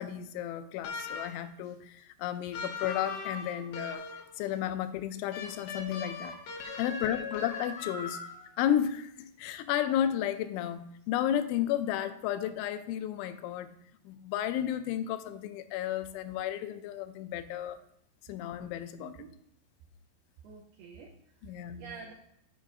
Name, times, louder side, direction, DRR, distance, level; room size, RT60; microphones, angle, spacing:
voice 1, 0.0-4.0 4.4-8.2 8.6-13.7 14.1-17.8 18.3-19.1 21.4-21.8, left 11 dB, 90° left, 3.0 m, -33 dB
sound 1, 0.8-1.5 2.5-4.4 5.3-8.5, left 4 dB, 70° left, 2.4 m, -39 dB
voice 2, 6.8-7.3 19.0-19.3 20.4-22.1, right 5 dB, 80° right, 2.3 m, -49 dB
10.5 x 8.1 x 2.6 m
omnidirectional pair, 5.3 m